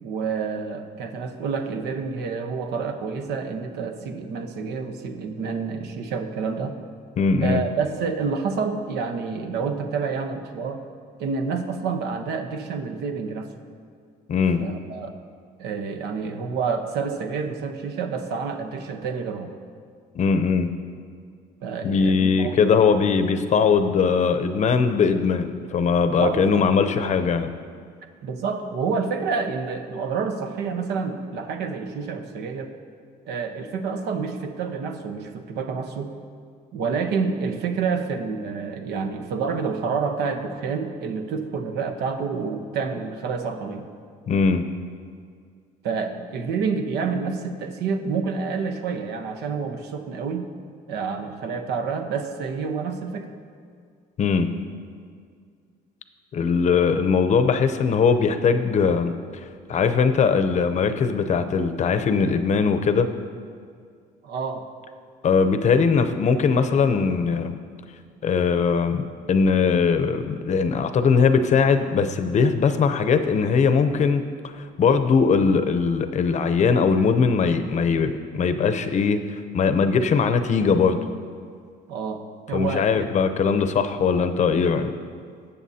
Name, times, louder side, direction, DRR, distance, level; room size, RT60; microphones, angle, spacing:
voice 1, 0.0-6.8 7.4-10.8 11.2-13.5 14.6-15.1 15.6-19.5 21.6-22.5 26.2-26.6 28.2-32.7 33.3-36.1 36.7-43.9 45.8-50.4 50.9-53.3 64.2-64.6 81.9-83.2, right 5 dB, 80° right, 6 dB, 1.0 m, -28 dB
voice 2, 7.2-7.6 14.3-14.6 20.1-20.7 21.8-27.5 44.3-44.6 54.2-54.5 56.3-59.1 59.7-63.1 65.2-67.6 68.2-74.5 74.8-81.0 82.5-84.9, left 5 dB, 45° left, 9 dB, 0.7 m, -20 dB
19.0 x 7.1 x 2.8 m, 2.2 s
cardioid pair, 110°, 17 cm